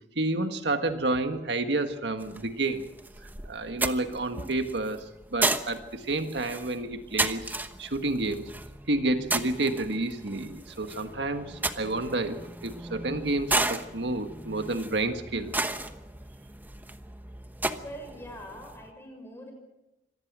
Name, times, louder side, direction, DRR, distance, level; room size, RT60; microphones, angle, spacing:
voice 1, 0.1-2.8 3.5-7.5 7.8-8.5 8.9-15.6, right 2 dB, 80° right, 7 dB, 1.7 m, -30 dB
sound 1, 2.2-18.9, right 2 dB, 10° right, 1.0 m, -34 dB
voice 2, 17.8-19.5, equal, 15° left, 3 dB, 6.6 m, -43 dB
26.0 x 18.5 x 6.2 m, 0.96 s
head